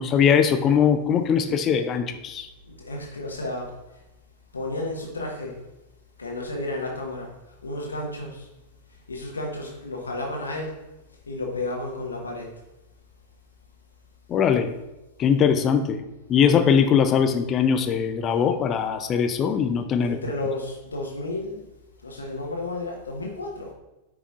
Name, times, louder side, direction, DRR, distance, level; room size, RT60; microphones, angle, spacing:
voice 1, 0.0-2.5 14.3-14.7 15.2-16.0 16.3-20.2, left 7 dB, 30° left, 8 dB, 0.5 m, -21 dB
voice 2, 2.7-3.7 4.5-5.5 6.2-7.3 7.6-8.5 9.1-10.8 11.3-12.5 20.0-21.6 22.0-23.7, left 2 dB, 75° left, -1 dB, 1.3 m, -32 dB
9.7 x 4.8 x 2.5 m, 1.0 s
figure-of-eight pair, 90°, 0 cm